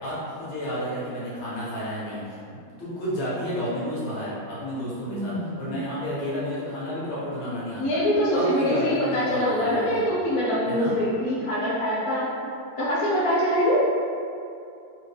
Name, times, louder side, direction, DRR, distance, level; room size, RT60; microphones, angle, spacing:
voice 1, 0.0-8.0 8.3-10.0 10.6-11.0, equal, 80° left, -8 dB, 2.0 m, -31 dB
voice 2, 5.1-5.7 7.8-12.3 12.8-13.9, equal, 60° left, -8 dB, 0.3 m, -24 dB
4.1 x 2.9 x 3.2 m, 2.5 s
omnidirectional pair, 2.2 m